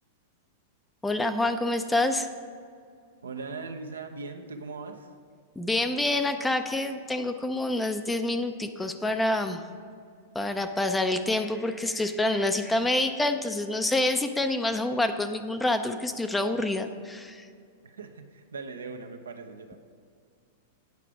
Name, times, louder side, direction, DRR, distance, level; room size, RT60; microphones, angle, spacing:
voice 1, 1.0-2.3 5.6-9.6 10.3-17.5, left 2 dB, 10° left, 8 dB, 0.5 m, -27 dB
voice 2, 3.2-5.1 17.8-19.8, right 4 dB, 85° right, 5 dB, 0.7 m, -39 dB
9.2 x 5.7 x 4.8 m, 2.2 s
hypercardioid pair, 105°, 0 cm